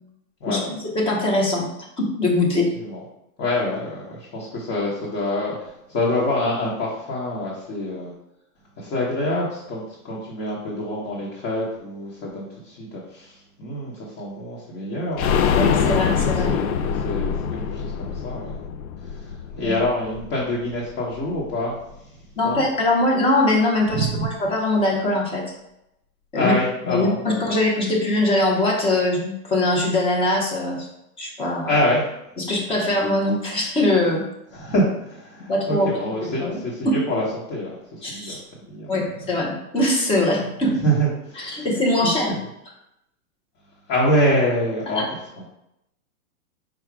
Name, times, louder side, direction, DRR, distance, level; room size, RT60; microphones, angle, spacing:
voice 1, 0.9-1.7 2.0-2.7 15.5-16.5 19.6-19.7 22.4-25.4 26.3-26.5 26.9-30.9 31.2-31.7 32.4-34.2 35.5-35.9 36.2-36.6 36.8-37.0 38.0-38.4 38.9-40.7 41.4-42.4 44.9-45.1, left 2 dB, 15° left, -1 dB, 0.6 m, -22 dB
voice 2, 3.4-8.1 8.8-15.4 16.3-18.5 19.0-21.8 22.4-22.6 23.9-24.3 26.3-27.5 31.7-32.0 34.5-38.4 38.6-38.9 40.4-40.5 40.8-41.7 42.0-42.4 43.9-45.0, left 1 dB, 35° left, -5 dB, 1.1 m, -26 dB
sound 1, 15.2-20.8 21.1-21.2 21.5-21.6, left 7 dB, 70° left, 0.6 m, -24 dB
5.0 x 2.3 x 4.6 m, 0.85 s
hypercardioid pair, 145°, 45 cm